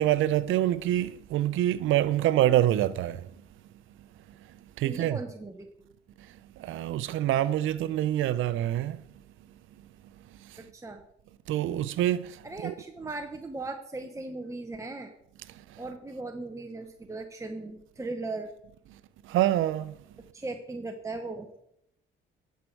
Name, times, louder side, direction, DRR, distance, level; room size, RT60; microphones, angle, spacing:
voice 1, 0.0-3.2 4.8-5.2 6.6-9.0 11.5-12.3 12.6-12.7 19.3-19.9, right 13 dB, 80° right, 0.6 m, -25 dB
voice 2, 4.8-5.9 10.6-11.0 12.4-15.1 15.8-18.5 20.3-21.5, right 2 dB, 15° right, 0.9 m, -38 dB
11.0 x 6.6 x 4.6 m
cardioid pair, 90°, 20 cm